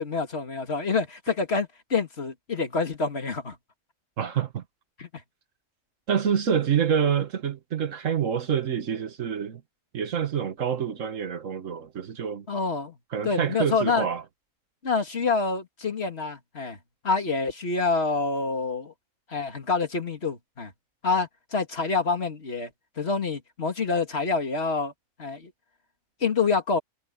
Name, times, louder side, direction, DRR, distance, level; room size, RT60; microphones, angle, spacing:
voice 1, 0.0-3.6 5.0-5.1 12.5-13.0 13.2-14.1 14.8-16.8 17.0-18.9 19.3-20.7 21.0-22.7 23.0-24.9 25.2-25.5 26.2-26.8, left 4 dB, 50° left, 2.3 m, -27 dB
voice 2, 4.2-4.6 6.1-9.6 9.9-12.5 13.1-14.2, right 7 dB, 75° right, 1.6 m, -27 dB
omnidirectional pair, 1.4 m